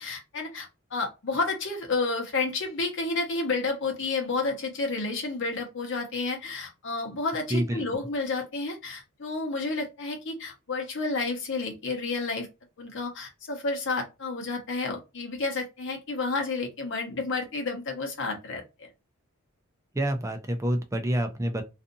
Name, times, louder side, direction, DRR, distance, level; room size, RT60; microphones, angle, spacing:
voice 1, 0.0-12.5 12.8-18.9, left 3 dB, 60° left, 0.9 m, -31 dB
voice 2, 7.5-8.0 19.9-21.6, right 1 dB, 15° right, 0.4 m, -28 dB
2.5 x 2.5 x 2.6 m
head